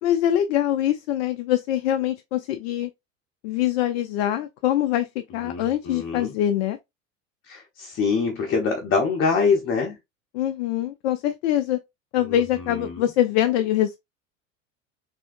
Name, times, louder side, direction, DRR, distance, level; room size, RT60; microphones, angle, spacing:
voice 1, 0.0-2.9 3.4-5.1 5.3-6.8 10.3-11.8 12.1-14.0, left 12 dB, 60° left, 0.5 m, -23 dB
voice 2, 5.4-6.3 7.5-10.0 12.2-13.0, left 5 dB, 30° left, 0.8 m, -25 dB
3.5 x 2.7 x 2.5 m
figure-of-eight pair, 75°, 39 cm